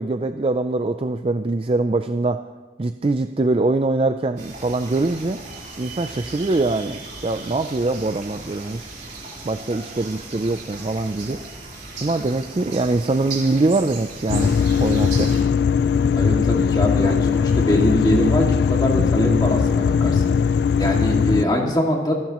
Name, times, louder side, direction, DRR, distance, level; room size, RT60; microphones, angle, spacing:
voice 1, 0.0-2.4 2.8-5.4 5.8-8.9 9.4-11.4 12.0-15.3, right 2 dB, 30° right, 8 dB, 0.4 m, -23 dB
sound 1, 4.4-15.4, right 3 dB, 45° right, 3.7 m, -37 dB
sound 2, 14.3-21.4, left 6 dB, 70° left, 0.3 m, -19 dB
voice 2, 16.2-20.3 20.8-22.1, equal, 25° left, 0 dB, 2.2 m, -22 dB
26.5 x 12.0 x 3.0 m, 1.3 s
head